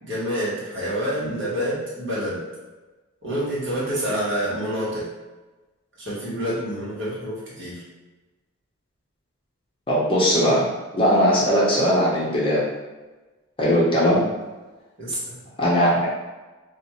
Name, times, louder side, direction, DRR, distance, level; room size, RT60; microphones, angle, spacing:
voice 1, 0.0-2.4 3.2-5.1 6.0-7.8 15.0-15.4, equal, 55° right, -8 dB, 1.4 m, -27 dB
voice 2, 9.9-10.7 10.9-12.6 13.6-14.2 15.6-16.0, equal, 25° left, -6 dB, 0.7 m, -19 dB
2.6 x 2.4 x 4.2 m, 1.2 s
head